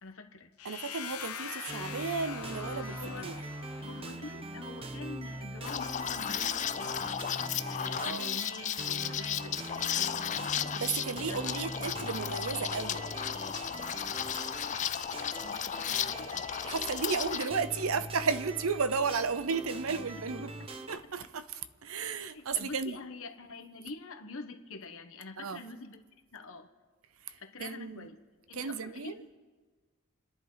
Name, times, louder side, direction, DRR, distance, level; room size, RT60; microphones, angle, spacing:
voice 1, 0.0-0.5 2.9-3.4 3.8-7.2 7.6-10.5 11.1-12.1 15.4-16.5 20.1-20.2 20.6-20.7 22.3-26.0 26.3-26.7 27.4-28.2 28.5-29.4, left 3 dB, 65° left, 1.2 m, -46 dB
sound 1, 0.6-4.4, left 8 dB, 85° left, 0.9 m, -43 dB
voice 2, 0.6-3.4 7.6-8.3 10.8-13.1 16.6-20.5 20.9-23.0 25.4-25.6 27.2-28.1 28.5-29.2, right 5 dB, 65° right, 0.7 m, -34 dB
sound 2, 1.7-21.0, right 2 dB, 25° right, 0.8 m, -42 dB
Liquid, 5.6-17.5, left 9 dB, 35° left, 0.4 m, -34 dB
29.0 x 10.5 x 4.0 m
head